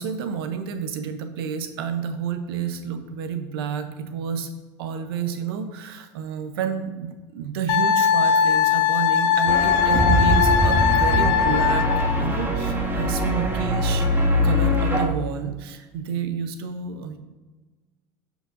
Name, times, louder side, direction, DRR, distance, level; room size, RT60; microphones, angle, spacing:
voice 1, 0.0-4.5 4.8-11.9 12.2-14.1 14.4-17.2, right 7 dB, 85° right, 8 dB, 0.9 m, -30 dB
Wind instrument woodwind instrument, 7.7-12.1, left 8 dB, 75° left, 0.9 m, -20 dB
sound 1, 9.5-15.1, equal, 15° right, 1.5 m, -22 dB
14.0 x 5.0 x 2.6 m, 1.3 s
supercardioid pair, 105°, 12 cm